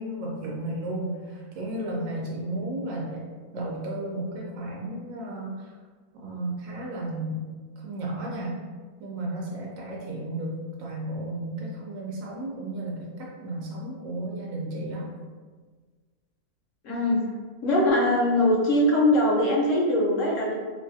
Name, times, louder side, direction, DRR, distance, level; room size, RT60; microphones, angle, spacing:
voice 1, 0.0-5.7 6.1-7.5 7.8-8.6 9.0-15.1, right 1 dB, 70° right, -3 dB, 0.8 m, -33 dB
voice 2, 16.8-17.2 17.6-20.5, left 1 dB, 65° left, -4 dB, 0.9 m, -22 dB
2.7 x 2.2 x 2.6 m, 1.5 s
omnidirectional pair, 1.6 m